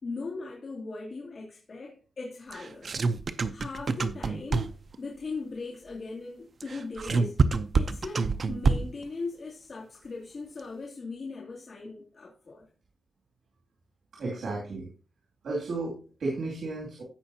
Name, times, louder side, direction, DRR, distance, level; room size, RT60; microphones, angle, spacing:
voice 1, 0.0-2.9 3.5-7.4 7.8-12.6, left 3 dB, 50° left, 2.6 m, -39 dB
sound 1, 2.5-5.0 6.6-9.1, right 4 dB, 50° right, 0.7 m, -26 dB
voice 2, 14.1-14.9 15.4-17.0, right 3 dB, 90° right, 2.6 m, -33 dB
16.0 x 5.5 x 2.8 m
wide cardioid pair, 125°, 0 cm